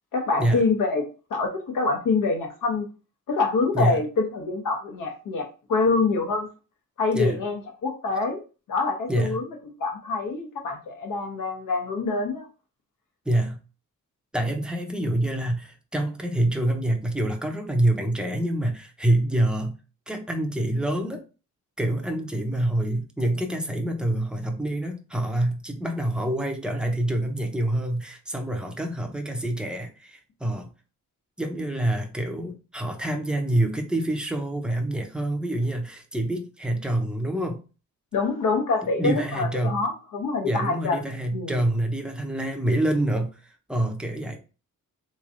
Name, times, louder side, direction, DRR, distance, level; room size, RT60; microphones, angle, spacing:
voice 1, 0.1-2.9 3.3-6.5 7.0-8.4 8.7-9.4 9.8-12.5 38.1-41.0 41.3-41.5, left 3 dB, 85° left, 1.1 m, -25 dB
voice 2, 9.1-9.4 13.3-13.6 14.3-19.8 20.1-21.2 21.8-30.7 31.4-37.6 39.0-39.9 40.4-44.4, right 1 dB, 5° right, 0.5 m, -26 dB
3.9 x 3.1 x 2.5 m
wide cardioid pair, 160°, 31 cm